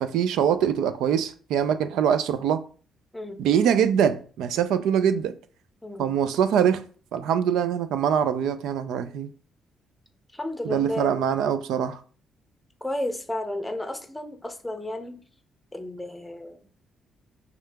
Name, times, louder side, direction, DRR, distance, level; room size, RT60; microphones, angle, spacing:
voice 1, 0.0-2.6 3.4-5.4 6.0-6.8 7.1-9.3 10.6-12.0, right 8 dB, 85° right, 0.3 m, -23 dB
voice 2, 10.3-11.2 12.8-15.2 15.7-16.6, left 1 dB, 10° left, 0.6 m, -32 dB
3.6 x 2.8 x 3.3 m
cardioid pair, 90°, 0 cm